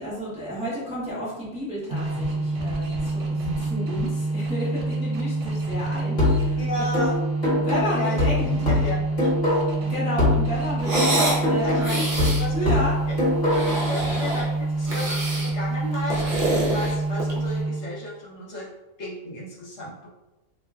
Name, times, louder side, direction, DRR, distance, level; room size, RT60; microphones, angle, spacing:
voice 1, 0.0-6.8 7.6-8.5 9.8-12.0 12.5-12.9, equal, 5° right, -8 dB, 0.6 m, -31 dB
sound 1, 1.9-18.0, right 2 dB, 75° right, 0.9 m, -27 dB
sound 2, 6.2-9.9 10.2-13.9, left 2 dB, 35° left, 1.1 m, -24 dB
voice 2, 6.6-7.2 7.9-8.2 8.7-9.3 11.1-11.3 11.6-12.0 12.4-12.7 13.4-18.7 19.0-20.1, left 1 dB, 65° left, -4 dB, 1.0 m, -33 dB
sound 3, 10.8-11.4 11.8-12.5 13.3-14.5 14.8-15.5 15.9-17.5, right 1 dB, 50° right, 0.8 m, -26 dB
2.5 x 2.2 x 3.3 m, 1.0 s
omnidirectional pair, 1.3 m